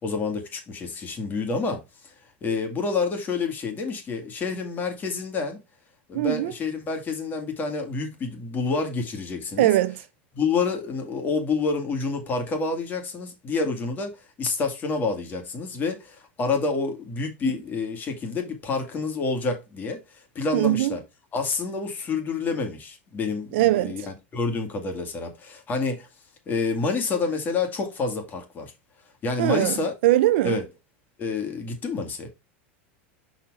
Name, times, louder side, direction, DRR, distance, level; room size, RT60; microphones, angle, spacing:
voice 1, 0.0-2.1 2.4-5.6 6.1-9.7 10.3-21.0 21.3-26.1 26.5-28.7 29.2-29.9 30.4-30.6 31.2-32.3, left 4 dB, 30° left, 2.2 m, -28 dB
voice 2, 6.1-6.5 9.6-10.0 20.5-20.9 23.5-24.0 29.4-30.6, right 15 dB, 75° right, 0.7 m, -21 dB
5.6 x 4.4 x 4.8 m
supercardioid pair, 125°, 6 cm